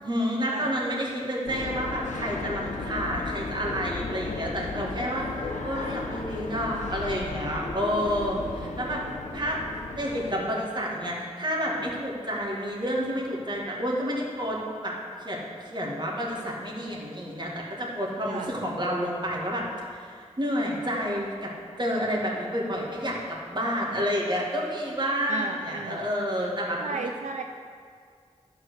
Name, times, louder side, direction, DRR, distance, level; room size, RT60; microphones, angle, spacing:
voice 1, 0.0-9.0 9.3-9.6 10.0-14.9 15.2-15.4 15.6-19.6 19.9-21.5 21.8-26.8, equal, 40° right, -3 dB, 2.0 m, -29 dB
sound 1, 1.5-10.4, left 3 dB, 90° left, 0.9 m, -35 dB
voice 2, 8.0-9.0 18.2-18.5 25.3-26.1 26.8-27.4, right 4 dB, 80° right, 4 dB, 0.5 m, -36 dB
12.0 x 4.6 x 6.4 m, 2.1 s
wide cardioid pair, 80°, 12 cm